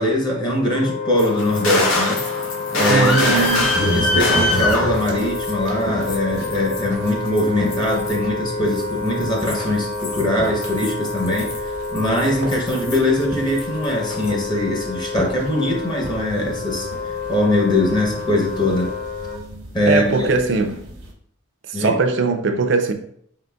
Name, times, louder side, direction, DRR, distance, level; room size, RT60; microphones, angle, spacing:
voice 1, 0.0-2.3 2.8-11.5 11.9-16.9 17.3-18.9 19.7-20.3 21.7-22.0, left 1 dB, 20° left, 0.7 m, -21 dB
Wind instrument woodwind instrument, 0.7-19.4, left 3 dB, 60° left, 0.9 m, -29 dB
sound 1, 1.1-5.7 6.0-8.3 8.7-13.2 13.5-14.3, left 2 dB, 90° left, 1.0 m, -24 dB
voice 2, 2.9-3.7 19.9-20.8 21.7-22.9, right 4 dB, 60° right, 0.5 m, -20 dB
sound 2, 2.9-21.1, equal, 85° right, 1.0 m, -33 dB
4.4 x 3.8 x 2.2 m
head